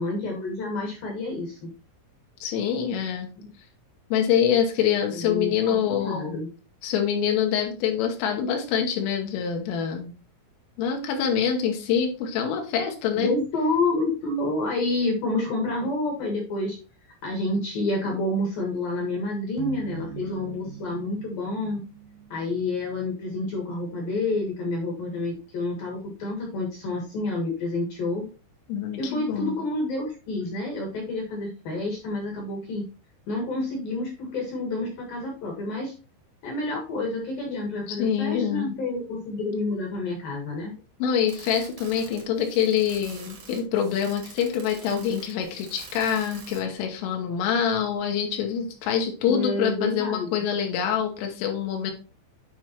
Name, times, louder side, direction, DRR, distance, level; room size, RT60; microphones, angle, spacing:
voice 1, 0.0-1.7 5.1-6.5 13.2-16.8 17.2-21.8 22.3-28.2 29.0-32.8 33.3-35.9 36.4-40.7 49.2-50.4, left 2 dB, 60° left, 0 dB, 2.5 m, -29 dB
voice 2, 2.4-3.3 4.1-6.4 6.8-10.1 10.8-13.4 28.7-29.6 37.5-37.6 37.9-38.8 41.0-51.9, left 8 dB, 80° left, 3 dB, 3.5 m, -25 dB
sound 1, 19.6-24.0, right 9 dB, 80° right, 2.9 m, -42 dB
sound 2, 41.2-46.8, right 5 dB, 65° right, 1.9 m, -46 dB
9.4 x 5.1 x 2.9 m, 0.35 s
omnidirectional pair, 6.0 m